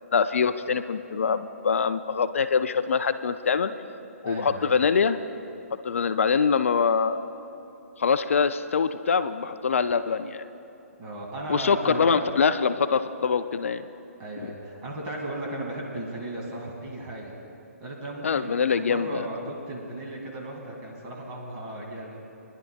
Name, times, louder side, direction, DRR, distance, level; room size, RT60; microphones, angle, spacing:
voice 1, 0.1-3.7 4.2-5.2 5.8-7.2 8.0-10.5 11.5-13.8 14.4-14.5 18.2-19.3, left 6 dB, 60° left, 11 dB, 0.4 m, -24 dB
voice 2, 4.2-4.7 11.0-12.2 14.2-17.3 17.8-22.2, right 1 dB, 25° right, -2 dB, 2.2 m, -36 dB
30.0 x 11.0 x 2.3 m, 3.0 s
figure-of-eight pair, 130°, 8 cm